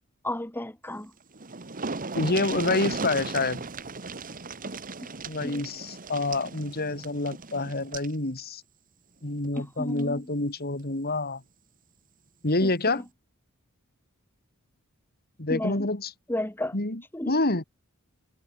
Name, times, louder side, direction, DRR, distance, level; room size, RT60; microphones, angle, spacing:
voice 1, 0.2-1.1 5.0-5.1 5.4-5.6 9.5-10.3 12.6-13.0 15.5-15.9 16.3-16.7 17.1-17.3, left 1 dB, 10° left, 1.7 m, -33 dB
sound 1, 1.0-1.1 1.3-8.1 9.4-9.6 10.0-10.1, right 3 dB, 40° right, 2.0 m, -36 dB
voice 2, 2.1-3.6 5.3-8.6 9.2-11.4 12.4-13.0 15.4-16.1 16.7-17.0 17.3-17.6, left 2 dB, 45° left, 2.9 m, -27 dB
head